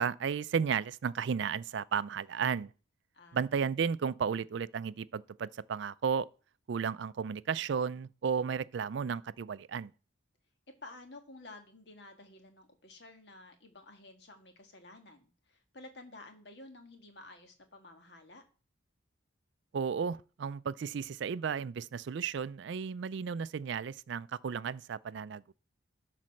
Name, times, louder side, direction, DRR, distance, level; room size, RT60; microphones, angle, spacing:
voice 1, 0.0-2.7 3.3-6.3 6.7-9.9 19.7-25.5, right 6 dB, 65° right, 0.3 m, -33 dB
voice 2, 3.1-3.6 10.8-18.4, left 2 dB, 55° left, 1.6 m, -52 dB
12.0 x 4.2 x 6.3 m
head